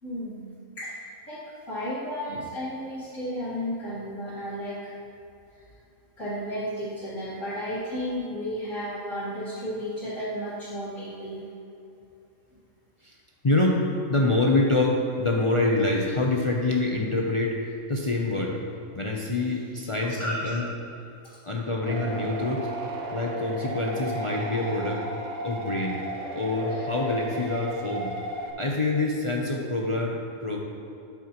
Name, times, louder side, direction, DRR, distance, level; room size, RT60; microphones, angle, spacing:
voice 1, 0.0-0.5 0.8-1.4 1.7-4.9 6.2-11.5 20.1-20.4, equal, 65° left, -11 dB, 2.2 m, -33 dB
voice 2, 13.4-18.6 18.9-20.7 21.4-22.7 23.1-25.0 25.4-26.0 26.3-28.1 28.6-30.6, left 2 dB, 45° left, -1 dB, 0.4 m, -26 dB
sound 1, 21.9-28.5, right 2 dB, 90° right, 1.4 m, -34 dB
12.0 x 5.9 x 3.0 m, 2.7 s
omnidirectional pair, 1.4 m